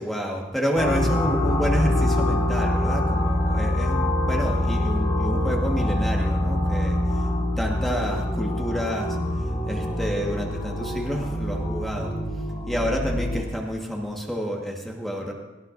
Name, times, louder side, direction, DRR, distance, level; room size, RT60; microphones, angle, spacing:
voice 1, 0.0-7.3 7.6-9.2 9.7-12.2 12.7-15.3, equal, ahead, -1 dB, 1.4 m, -29 dB
sound 1, 0.8-13.4, left 1 dB, 35° left, 4.8 m, -25 dB
18.0 x 16.5 x 2.6 m, 1.0 s
head